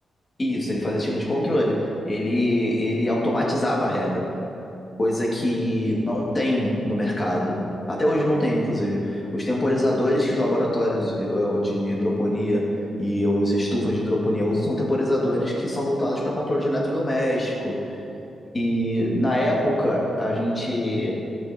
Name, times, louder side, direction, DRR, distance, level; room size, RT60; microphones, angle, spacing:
voice 1, 0.4-4.3 5.0-18.0 18.5-21.1, left 1 dB, 25° left, -4 dB, 2.2 m, -23 dB
14.5 x 6.1 x 3.0 m, 2.7 s
cardioid pair, 90°, 0 cm